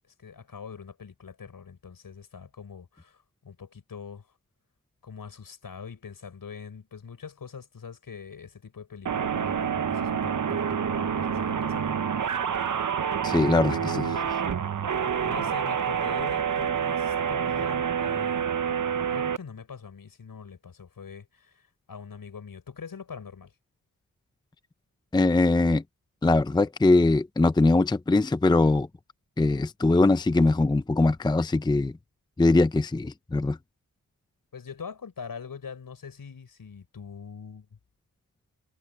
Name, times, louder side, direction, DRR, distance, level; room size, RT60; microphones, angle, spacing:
voice 1, 0.2-4.3 5.0-12.2 13.4-14.3 15.2-23.5 34.5-37.8, left 6 dB, 70° left, 6.6 m, -43 dB
sound 1, 9.1-19.4, right 7 dB, 60° right, 0.9 m, -27 dB
voice 2, 13.2-14.1 25.1-25.8 26.2-28.9 29.4-31.9 32.4-33.6, left 2 dB, 10° left, 0.5 m, -22 dB
wide cardioid pair, 110°, 36 cm